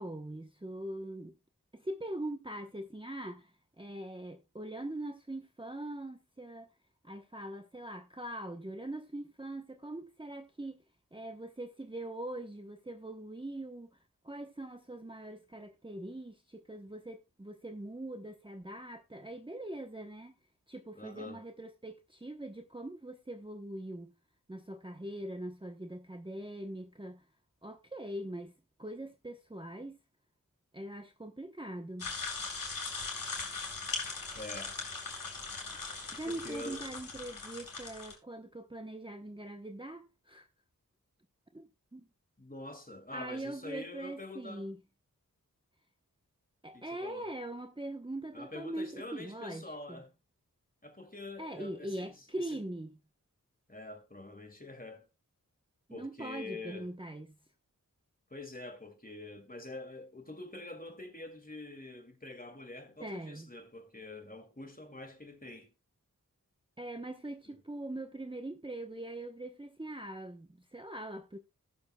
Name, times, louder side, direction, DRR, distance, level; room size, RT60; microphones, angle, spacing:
voice 1, 0.0-1.3 1.7-3.5 3.8-6.7 7.0-10.8 11.1-14.0 14.2-20.3 20.7-24.1 24.5-27.2 27.6-28.5 28.8-30.0 30.7-32.1 36.1-40.5 41.5-42.1 43.1-44.8 46.6-50.0 51.4-53.0 55.9-57.4 63.0-63.5 66.8-71.4, right 1 dB, 15° right, 0.9 m, -42 dB
voice 2, 20.9-21.4 34.3-34.7 36.3-36.9 42.4-44.7 46.7-47.3 48.3-50.1 50.8-52.6 53.7-55.1 55.9-56.9 58.3-65.7 67.5-67.6, left 2 dB, 25° left, 2.3 m, -46 dB
sound 1, 32.0-38.1, left 4 dB, 85° left, 3.9 m, -40 dB
19.5 x 7.0 x 2.2 m
wide cardioid pair, 45°, 34 cm